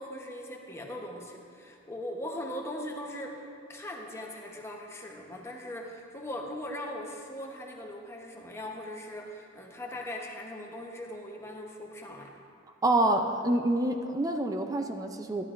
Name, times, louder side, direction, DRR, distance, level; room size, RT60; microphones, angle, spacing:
voice 1, 0.0-3.4 3.7-12.3, left 1 dB, 15° left, 0 dB, 0.9 m, -40 dB
voice 2, 12.8-15.5, right 1 dB, 20° right, 5 dB, 0.4 m, -27 dB
12.0 x 11.0 x 2.5 m, 2.5 s
head